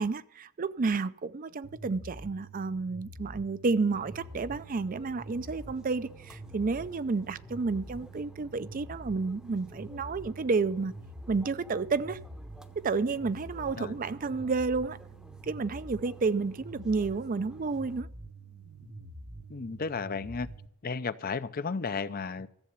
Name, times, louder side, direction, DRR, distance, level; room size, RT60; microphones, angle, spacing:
voice 1, 0.0-10.9 11.3-12.2 12.8-15.0 15.4-18.1, right 4 dB, 40° right, 0.5 m, -31 dB
sound 1, 1.6-20.7, right 1 dB, 85° right, 1.5 m, -47 dB
sound 2, 3.9-18.0, equal, 5° right, 0.8 m, -54 dB
voice 2, 19.5-20.5 20.8-22.5, left 4 dB, 45° left, 0.6 m, -33 dB
14.0 x 7.7 x 7.0 m
head